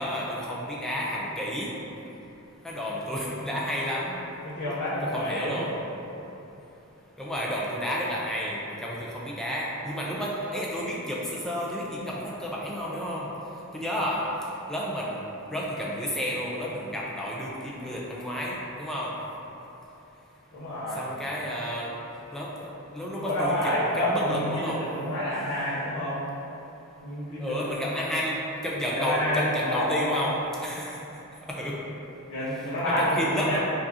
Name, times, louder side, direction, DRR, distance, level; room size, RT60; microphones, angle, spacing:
voice 1, 0.0-1.7 2.6-4.2 5.1-5.7 7.2-13.3 13.7-14.2 14.7-15.2 15.5-19.1 20.9-21.9 22.3-24.8 27.4-28.4 28.6-30.3 30.6-31.0 31.5-31.8 32.8-33.6, equal, ahead, -5 dB, 0.4 m, -31 dB
voice 2, 4.4-5.7 20.5-21.1 23.2-26.2 27.0-28.1 28.9-30.3 32.3-33.6, equal, 80° left, -11 dB, 0.8 m, -28 dB
4.7 x 2.4 x 2.7 m, 3.0 s
head